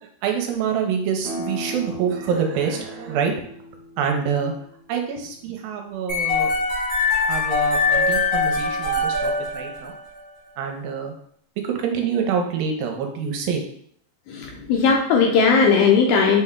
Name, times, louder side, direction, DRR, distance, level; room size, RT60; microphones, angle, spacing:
voice 1, 0.0-3.3 4.0-4.5 4.9-6.5 7.2-9.9 10.6-11.1 11.6-13.6, right 7 dB, 90° right, 3 dB, 2.4 m, -26 dB
sound 1, 1.2-6.6, right 1 dB, 65° right, 1.7 m, -38 dB
sound 2, 6.1-10.2, left 3 dB, 55° left, 1.4 m, -22 dB
voice 2, 14.3-16.4, left 5 dB, 80° left, 0 dB, 1.7 m, -17 dB
6.0 x 2.2 x 3.6 m, 0.65 s
omnidirectional pair, 4.0 m